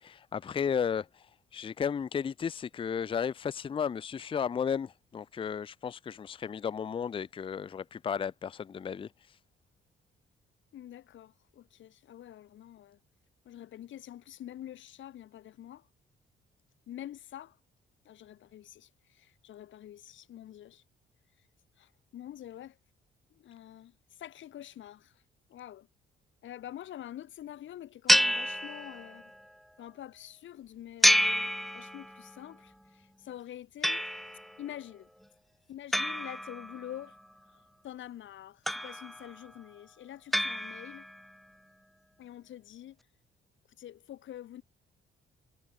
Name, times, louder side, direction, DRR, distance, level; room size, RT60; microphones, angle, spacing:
voice 1, 0.0-1.1 1.5-9.1, left 7 dB, 25° left, 0.4 m, -33 dB
voice 2, 10.7-13.0 13.4-15.9 16.9-17.6 18.0-20.8 21.8-22.8 23.3-25.2 25.5-25.9 26.4-29.3 29.8-34.1 34.6-35.1 35.7-37.2 37.5-41.1 42.2-43.0 43.8-44.6, left 12 dB, 75° left, 3.0 m, -46 dB
sound 1, 28.1-29.3 31.0-32.3 33.8-34.5 35.9-37.1 38.7-39.4 40.3-41.2, equal, ahead, 0.9 m, -28 dB
cardioid pair, 90°, 20 cm